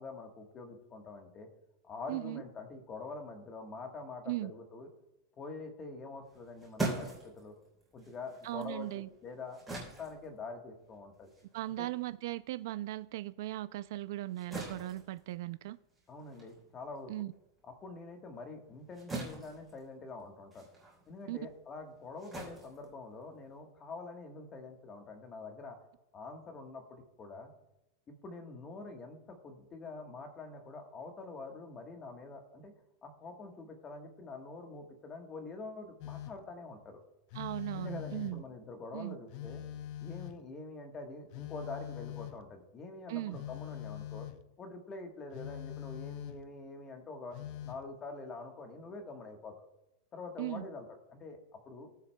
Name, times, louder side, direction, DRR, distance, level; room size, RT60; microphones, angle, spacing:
voice 1, 0.0-1.5 1.8-4.9 5.4-7.5 7.9-11.3 11.8-11.9 16.1-17.1 17.8-20.7 21.1-25.8 26.1-27.5 28.1-32.7 33.0-37.0 37.7-39.6 40.0-44.3 44.6-47.4 47.6-49.7 50.1-51.9, left 3 dB, 20° left, 1.2 m, -46 dB
voice 2, 2.1-2.4 4.3-4.5 8.4-9.1 11.5-15.8 17.1-17.3 21.3-21.4 37.3-38.4 38.9-39.2 43.1-43.4 50.4-50.7, right 16 dB, 55° right, 0.3 m, -38 dB
sound 1, 6.2-13.0 13.4-23.6, right 2 dB, ahead, 3.2 m, -44 dB
Telephone, 36.0-36.5 37.3-38.5 39.3-40.5 41.3-42.6 43.3-44.5 45.3-46.6 47.3-47.9, left 12 dB, 35° left, 0.4 m, -43 dB
19.5 x 7.3 x 2.2 m
supercardioid pair, 170°, 2 cm